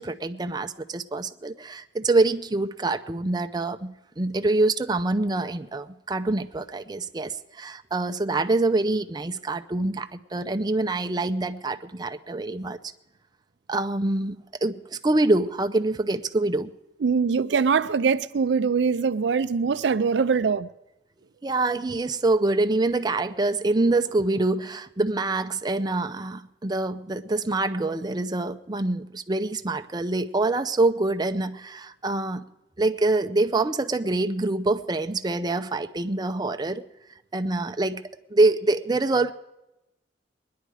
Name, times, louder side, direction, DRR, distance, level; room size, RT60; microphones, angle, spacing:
voice 1, 0.0-12.8 13.7-16.7 21.4-32.4 32.8-36.9 37.3-38.0 38.3-39.3, right 2 dB, 25° right, 0.5 m, -25 dB
voice 2, 17.0-20.7, right 5 dB, 75° right, 0.4 m, -23 dB
21.5 x 10.5 x 4.9 m
head